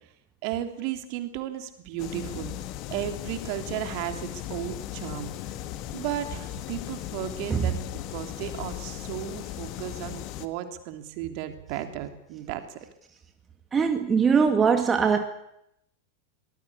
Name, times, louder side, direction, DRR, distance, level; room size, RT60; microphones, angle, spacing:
voice 1, 0.4-2.5 2.9-5.6 5.9-7.7 8.1-12.8, right 11 dB, 45° right, 3.0 m, -34 dB
sound 1, 2.0-10.5, left 13 dB, 40° left, 1.8 m, -37 dB
voice 2, 13.7-15.2, right 6 dB, 20° right, 2.0 m, -21 dB
24.0 x 19.5 x 8.5 m
figure-of-eight pair, 90°, 0 cm